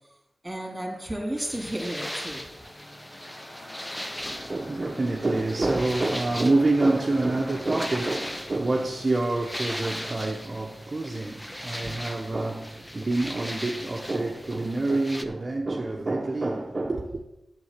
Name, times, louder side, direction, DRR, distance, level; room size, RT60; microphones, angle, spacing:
voice 1, 0.4-2.4 11.8-12.0, right 1 dB, 15° right, 3.1 m, -33 dB
sound 1, 0.6-12.0, left 1 dB, 45° left, 2.7 m, -47 dB
sound 2, 1.4-15.3, equal, 10° left, 0.9 m, -38 dB
voice 2, 4.2-17.2, right 2 dB, 45° right, 1.1 m, -27 dB
8.6 x 7.0 x 6.6 m
cardioid pair, 50°, 0 cm